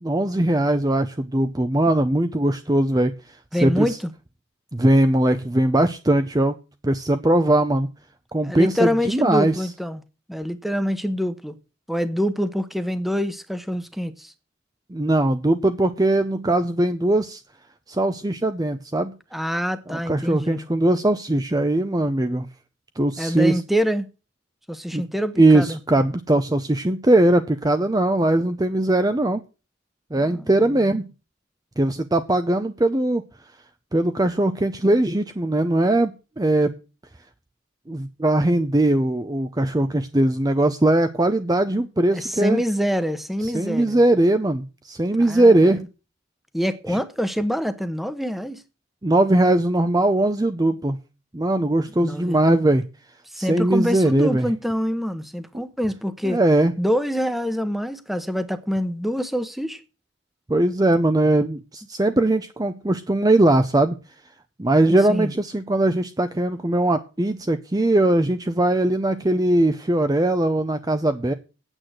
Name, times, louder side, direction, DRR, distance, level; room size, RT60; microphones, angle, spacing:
voice 1, 0.0-3.1 3.6-3.9 4.7-6.6 6.8-7.9 8.3-9.5 14.9-17.4 17.9-19.1 19.9-22.5 23.0-23.6 24.9-25.0 25.4-29.4 30.1-31.1 31.8-33.2 33.9-36.7 37.9-42.6 43.5-45.8 46.9-47.0 49.0-51.0 51.3-52.8 53.4-54.5 56.2-56.7 60.5-64.0 64.6-71.3, right 1 dB, 20° right, 0.6 m, -20 dB
voice 2, 3.5-4.1 8.4-10.0 10.3-11.6 11.9-14.3 19.3-20.6 23.2-24.1 24.7-25.8 30.2-30.5 42.1-44.0 45.2-45.9 46.5-48.6 52.0-52.4 53.3-56.4 56.8-59.8 65.1-65.3, equal, ahead, 0.9 m, -25 dB
9.0 x 7.8 x 7.9 m
head